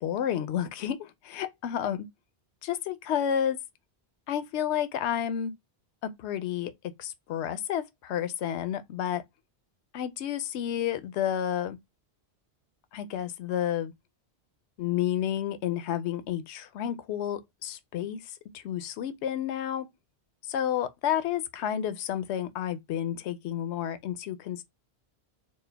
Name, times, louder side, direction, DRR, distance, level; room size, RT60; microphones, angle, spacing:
voice 1, 0.0-2.1 2.6-3.6 4.3-5.5 6.0-6.7 7.0-9.2 9.9-11.8 12.9-13.9 14.8-19.9 20.4-24.6, left 10 dB, 80° left, 0.9 m, -31 dB
4.3 x 2.0 x 3.3 m
omnidirectional pair, 1.1 m